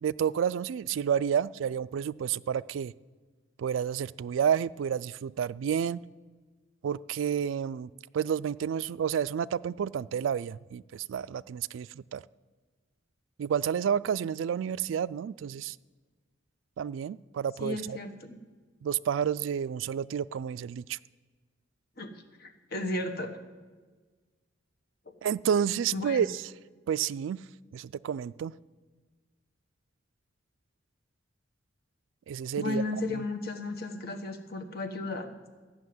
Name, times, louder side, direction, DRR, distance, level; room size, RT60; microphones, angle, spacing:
voice 1, 0.0-2.9 3.6-6.0 6.8-7.9 8.1-12.2 13.4-15.8 16.8-18.0 18.8-21.0 25.2-26.4 26.9-27.4 27.7-28.5 32.3-32.8 33.1-33.2, right 8 dB, 80° right, 19 dB, 0.3 m, -30 dB
voice 2, 17.6-18.4 22.0-22.1 22.4-23.4 25.1-25.2 25.9-26.3 32.6-35.3, left 2 dB, 55° left, 5 dB, 1.3 m, -34 dB
14.0 x 6.4 x 9.4 m, 1.4 s
head